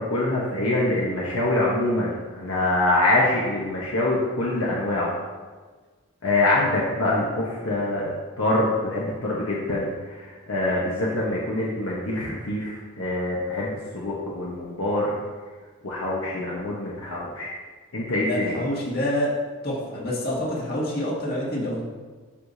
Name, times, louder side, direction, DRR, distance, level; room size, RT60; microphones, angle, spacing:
voice 1, 0.0-5.1 6.2-15.1 15.8-17.5 17.9-18.6, left 2 dB, 70° left, -5 dB, 1.1 m, -25 dB
voice 2, 18.2-19.3 19.6-21.8, left 1 dB, 45° left, -5 dB, 2.0 m, -27 dB
12.5 x 4.9 x 2.7 m, 1.4 s
head